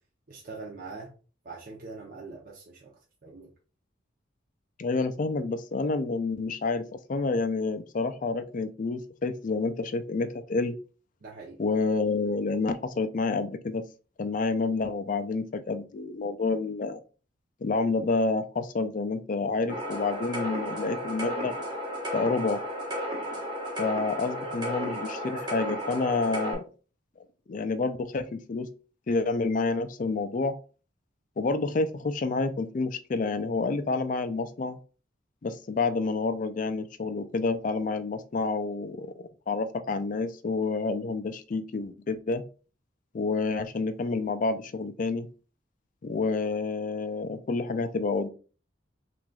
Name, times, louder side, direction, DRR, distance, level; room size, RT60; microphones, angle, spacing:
voice 1, 0.3-1.1 1.4-2.9 3.2-3.5 11.2-11.6, right 3 dB, 45° right, -2 dB, 0.7 m, -43 dB
voice 2, 4.8-10.7 11.6-13.8 14.2-17.0 17.6-21.5 22.1-22.6 23.8-26.6 27.5-28.7 29.1-30.6 31.4-34.8 35.4-42.4 43.1-45.3 46.0-48.3, left 3 dB, 40° left, 10 dB, 0.4 m, -29 dB
sound 1, 19.7-26.5, equal, 25° right, 1.3 m, -33 dB
5.9 x 2.5 x 2.3 m, 0.36 s
head